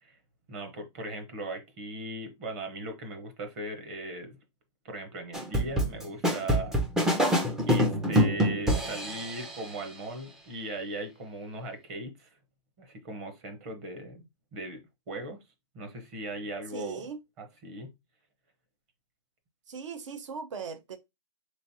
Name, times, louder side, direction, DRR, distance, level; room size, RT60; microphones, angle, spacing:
voice 1, 0.5-4.4 4.8-6.8 7.6-12.3 12.8-14.3 14.5-14.8 15.1-15.4 15.7-17.1 17.4-17.9, right 1 dB, 30° right, 0.8 m, -38 dB
sound 1, 5.3-9.7, equal, 5° right, 0.3 m, -26 dB
voice 2, 16.7-17.2 19.7-21.0, right 5 dB, 75° right, 0.7 m, -39 dB
3.6 x 3.1 x 2.7 m
hypercardioid pair, 160°, 16 cm